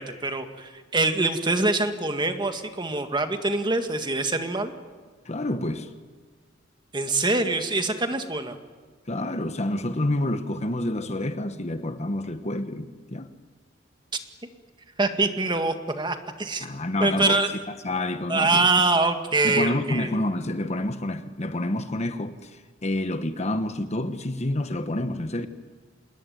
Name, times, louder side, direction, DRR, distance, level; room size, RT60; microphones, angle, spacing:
voice 1, 0.0-4.7 6.9-8.6 15.0-16.7 17.0-17.5 18.3-20.2, right 3 dB, 25° right, 1.8 m, -24 dB
voice 2, 5.2-5.9 9.1-13.3 16.6-17.4 17.8-18.8 19.4-25.5, left 1 dB, 35° left, 1.2 m, -28 dB
27.0 x 20.5 x 9.4 m
head